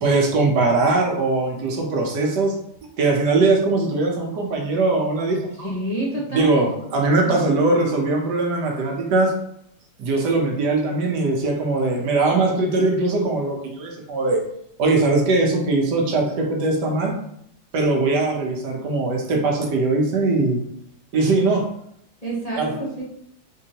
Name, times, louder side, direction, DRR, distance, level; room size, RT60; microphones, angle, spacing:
voice 1, 0.0-2.5 3.0-5.7 6.3-9.3 10.0-14.4 14.8-17.1 17.7-20.6 21.1-21.6 22.5-22.7, right 3 dB, 75° right, 0 dB, 1.4 m, -21 dB
voice 2, 5.6-6.7 7.2-7.3 22.2-23.0, right 1 dB, 30° left, -6 dB, 0.9 m, -28 dB
4.2 x 3.8 x 2.8 m, 0.73 s
omnidirectional pair, 1.8 m